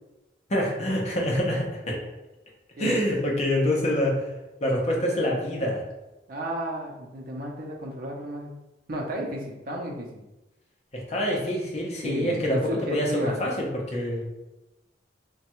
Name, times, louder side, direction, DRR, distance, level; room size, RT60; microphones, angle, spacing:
voice 1, 0.5-2.0 2.8-4.3 4.6-5.8 10.9-14.3, equal, 40° left, -2 dB, 0.7 m, -26 dB
voice 2, 6.3-8.5 8.9-10.2 12.0-13.3, right 1 dB, 50° right, -1 dB, 0.6 m, -33 dB
3.1 x 2.3 x 2.9 m, 1.0 s
head